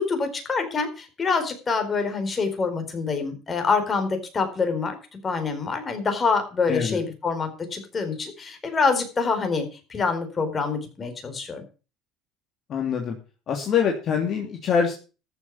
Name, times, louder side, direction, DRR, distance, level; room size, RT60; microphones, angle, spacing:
voice 1, 0.0-5.0 5.2-11.6, left 4 dB, 25° left, 6 dB, 4.4 m, -26 dB
voice 2, 6.7-7.0 12.7-13.2 13.5-14.9, left 7 dB, 45° left, 2 dB, 3.0 m, -24 dB
14.0 x 7.2 x 7.2 m, 0.34 s
supercardioid pair, 115°, 0 cm